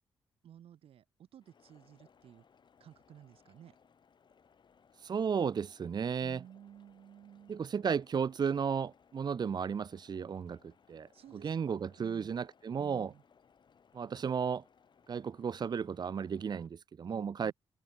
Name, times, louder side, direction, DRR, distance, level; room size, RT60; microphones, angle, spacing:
voice 1, 0.4-2.4 2.8-3.8 6.2-7.7 11.1-12.3 12.8-13.2 17.0-17.5, right 10 dB, 75° right, 7.0 m, -55 dB
sound 1, 1.4-16.7, left 6 dB, 50° left, 4.4 m, -66 dB
voice 2, 5.0-6.4 7.5-13.1 13.9-14.6 15.1-17.5, right 6 dB, 45° right, 0.7 m, -34 dB
cardioid pair, 75°, 10 cm